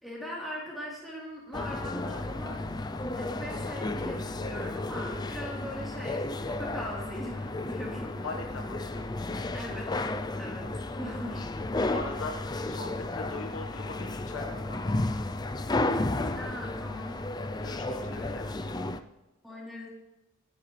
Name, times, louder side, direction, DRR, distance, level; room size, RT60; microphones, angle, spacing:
voice 1, 0.0-2.6 3.1-8.1 9.5-10.1 10.4-10.6 11.0-11.6 16.3-17.1 17.7-18.3 19.4-19.9, equal, ahead, -5 dB, 3.6 m, -40 dB
sound 1, 1.5-19.0, left 2 dB, 20° left, 0.4 m, -33 dB
voice 2, 8.2-9.0 10.6-10.7 11.8-15.3 17.6-18.9, left 3 dB, 65° left, 3 dB, 1.4 m, -41 dB
24.0 x 9.7 x 3.3 m, 0.99 s
head